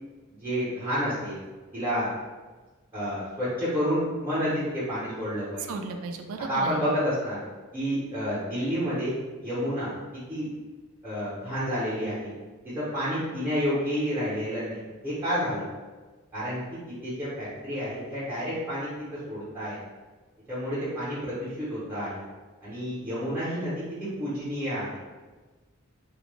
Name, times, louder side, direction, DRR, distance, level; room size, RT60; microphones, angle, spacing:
voice 1, 0.3-1.4 1.7-2.1 2.9-5.8 6.5-7.4 7.7-9.1 9.4-9.9 10.3-10.5 11.0-12.3 12.7-15.7 16.3-18.9 19.3-19.8 20.5-22.2 22.6-25.0, equal, 10° right, -12 dB, 0.7 m, -30 dB
voice 2, 5.7-6.8, right 3 dB, 80° right, 5 dB, 0.3 m, -35 dB
2.2 x 2.0 x 3.1 m, 1.3 s
head